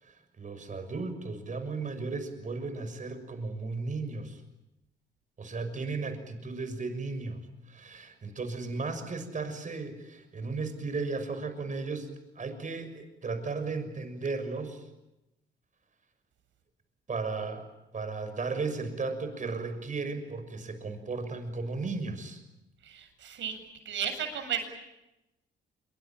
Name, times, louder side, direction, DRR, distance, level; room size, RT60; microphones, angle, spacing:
voice 1, 0.0-4.4 5.4-12.1 12.3-14.8 17.1-17.7 17.9-22.4, right 3 dB, 40° right, 8 dB, 6.5 m, -35 dB
voice 2, 22.8-23.6 23.8-24.7, right 8 dB, 70° right, 6 dB, 7.6 m, -34 dB
26.5 x 24.0 x 8.9 m, 0.93 s
cardioid pair, 90°, 20 cm